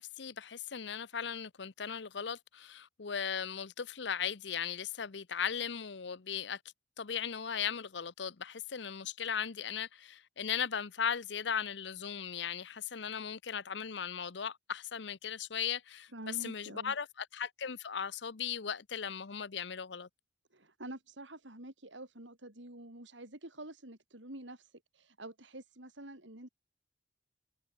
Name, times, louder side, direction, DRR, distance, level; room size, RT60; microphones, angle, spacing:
voice 1, 0.0-6.6 7.0-20.1, left 7 dB, 65° left, 0.8 m, -37 dB
voice 2, 16.1-16.9 20.5-26.5, right 1 dB, 75° right, 5.1 m, -48 dB
head